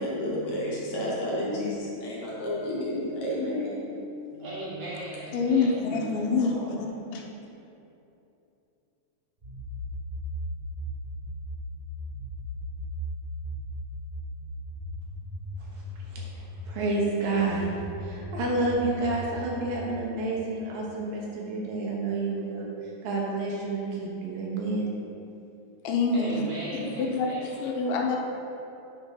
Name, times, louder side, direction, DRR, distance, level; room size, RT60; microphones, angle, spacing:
voice 1, 0.0-4.0 4.3-4.4, left 1 dB, 70° left, -5 dB, 1.9 m, -31 dB
voice 2, 4.4-6.8 26.1-27.6, right 1 dB, 60° right, -7 dB, 1.9 m, -38 dB
voice 3, 5.3-6.5 6.8-7.2 25.8-26.4 26.7-28.2, left 4 dB, 90° left, 1 dB, 2.6 m, -26 dB
sound 1, 9.4-16.7 17.4-19.9, equal, 35° right, 1.0 m, -37 dB
voice 4, 15.6-24.9, right 3 dB, 80° right, -3 dB, 2.9 m, -30 dB
8.8 x 3.7 x 5.7 m, 2.8 s
omnidirectional pair, 4.0 m